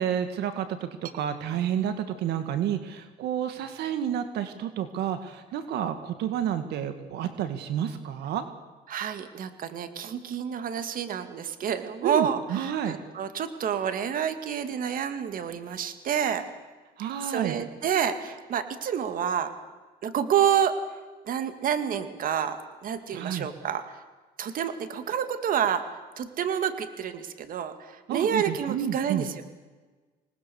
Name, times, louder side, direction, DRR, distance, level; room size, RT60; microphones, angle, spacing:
voice 1, 0.0-8.4 12.0-13.0 17.0-17.6 23.1-23.5 28.1-29.3, right 9 dB, 75° right, 9 dB, 1.9 m, -30 dB
voice 2, 8.9-16.4 17.0-19.5 20.0-20.8 21.2-22.6 22.8-24.0 24.4-25.8 26.2-29.4, right 8 dB, 55° right, 9 dB, 2.1 m, -29 dB
26.0 x 19.5 x 7.1 m, 1.3 s
cardioid pair, 110°, 17 cm